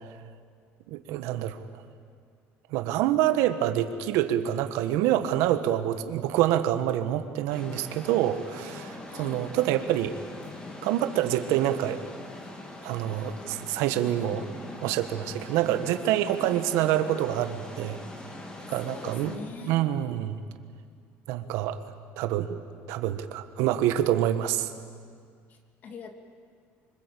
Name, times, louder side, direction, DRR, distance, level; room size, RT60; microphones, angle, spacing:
voice 1, 0.9-1.6 2.7-10.1 10.8-12.0 12.8-14.5 14.8-18.0 18.7-19.3 19.7-20.4 21.3-21.8 22.2-22.6 22.9-24.7, right 12 dB, 80° right, 9 dB, 1.6 m, -26 dB
sound 1, 7.5-19.4, left 2 dB, 15° left, 2.8 m, -42 dB
voice 2, 9.1-9.4 16.4-16.6 18.8-19.8 25.5-26.1, left 5 dB, 35° left, 5 dB, 2.6 m, -43 dB
25.5 x 25.0 x 8.6 m, 2.1 s
cardioid pair, 170°, 5 cm